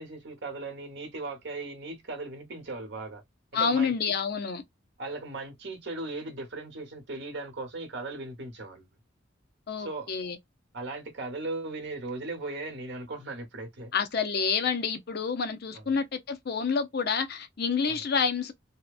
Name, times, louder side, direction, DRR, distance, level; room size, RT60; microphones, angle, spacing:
voice 1, 0.0-3.2 3.6-3.9 5.0-8.9 9.8-10.1 10.7-13.9 15.7-15.9 17.9-18.0, right 2 dB, 60° right, 1.0 m, -37 dB
voice 2, 3.5-4.6 9.7-10.4 13.9-18.5, left 5 dB, 55° left, 0.5 m, -28 dB
2.8 x 2.1 x 2.3 m
head